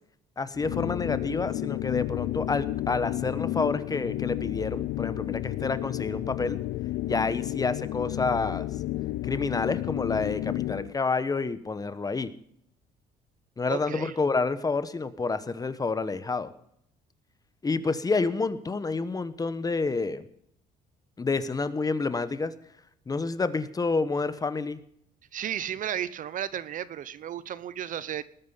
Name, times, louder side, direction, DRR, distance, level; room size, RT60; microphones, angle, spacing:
voice 1, 0.4-6.6 7.0-8.7 9.2-12.3 13.6-16.5 17.6-20.3 21.2-22.5 23.1-24.8, left 4 dB, 20° left, 14 dB, 1.1 m, -29 dB
sound 1, 0.5-11.0, left 16 dB, 80° left, 0.5 m, -32 dB
voice 2, 13.7-14.1 25.3-28.2, right 10 dB, 50° right, 17 dB, 0.8 m, -33 dB
19.0 x 9.6 x 5.6 m, 0.70 s
cardioid pair, 110°, 17 cm